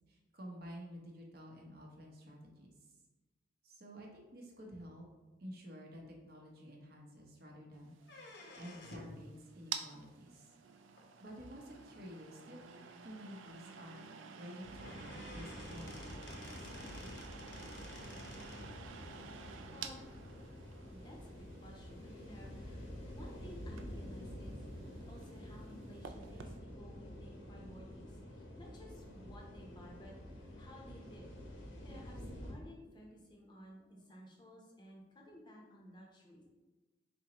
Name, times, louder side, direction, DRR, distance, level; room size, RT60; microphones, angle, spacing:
voice 1, 0.1-2.7 3.6-5.0 5.4-7.9 8.6-10.5 11.2-14.0 14.4-17.1, equal, 50° right, -1 dB, 0.7 m, -51 dB
sound 1, 7.9-26.6, right 7 dB, 80° right, 0.3 m, -51 dB
sound 2, 8.0-9.2 11.0-11.1 12.0-12.1 12.5-12.6 12.9-13.0 14.4-14.5 14.8-18.7, left 2 dB, 60° left, 0.7 m, -53 dB
sound 3, 14.6-32.5, left 1 dB, 85° left, 0.9 m, -49 dB
voice 2, 19.6-20.1 20.4-20.6 20.9-31.3 31.8-36.5, equal, 25° left, -1 dB, 0.6 m, -56 dB
4.0 x 3.5 x 2.9 m, 1.2 s
head